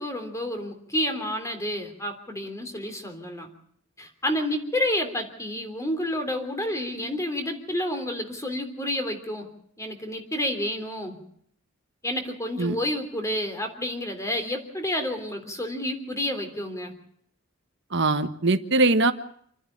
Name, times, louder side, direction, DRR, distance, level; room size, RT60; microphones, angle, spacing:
voice 1, 0.0-3.5 4.0-9.5 9.8-11.2 12.0-16.9, left 1 dB, 15° left, 6 dB, 3.3 m, -30 dB
voice 2, 17.9-19.1, right 2 dB, 60° right, 9 dB, 1.4 m, -21 dB
28.5 x 11.0 x 10.0 m, 0.66 s
head